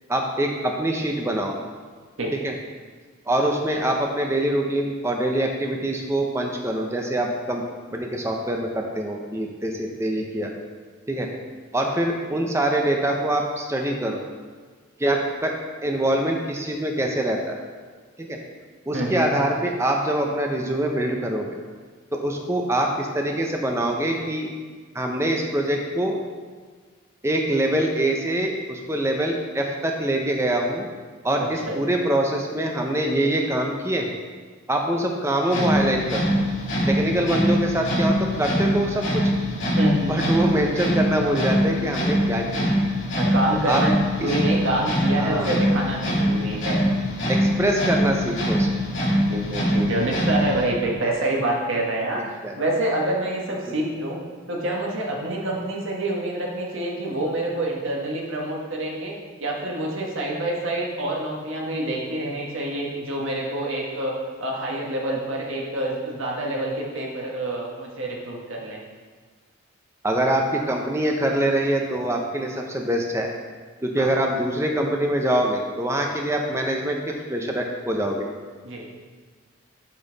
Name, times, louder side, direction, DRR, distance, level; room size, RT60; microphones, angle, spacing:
voice 1, 0.1-1.6 2.4-2.5 3.3-7.6 7.9-10.5 11.1-11.3 11.7-14.2 15.0-15.6 15.8-17.6 18.2-18.4 18.9-21.5 22.1-24.5 24.9-26.2 27.2-30.9 31.2-34.1 34.7-36.2 36.9-39.3 40.1-42.7 43.7-43.8 44.5-44.6 45.2-45.5 47.3-48.7 52.4-52.6 53.7-53.8 70.0-73.3 73.8-78.3, right 1 dB, 15° right, 1 dB, 0.6 m, -24 dB
voice 2, 18.9-19.3 31.4-31.8 39.7-40.2 43.2-43.9 44.2-46.8 49.3-52.2 52.5-54.2 54.5-59.1 59.4-64.1 64.4-68.8 74.0-74.1 78.6-78.9, right 1 dB, 70° right, -2 dB, 1.4 m, -27 dB
sound 1, 35.4-50.7, equal, 60° left, 2.3 m, -23 dB
8.1 x 5.4 x 3.9 m, 1.5 s
head